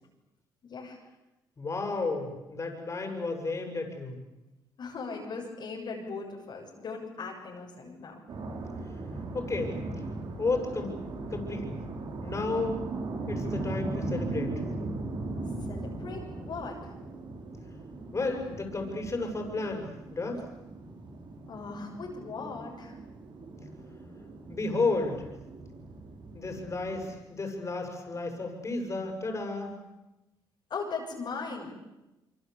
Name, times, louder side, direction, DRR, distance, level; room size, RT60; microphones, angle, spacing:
voice 1, 0.6-1.0 4.8-8.2 15.7-16.9 21.5-23.0 30.7-31.7, left 4 dB, 55° left, -1 dB, 7.2 m, -38 dB
voice 2, 1.6-4.2 9.3-9.8 10.4-10.9 11.3-11.7 12.2-12.8 13.3-14.5 18.1-20.4 24.5-25.3 26.3-29.7, left 3 dB, 35° left, 3 dB, 7.7 m, -32 dB
sound 1, 8.3-27.1, right 2 dB, 60° right, 5.1 m, -38 dB
26.5 x 24.5 x 8.5 m, 1.0 s
cardioid pair, 75°, 9 cm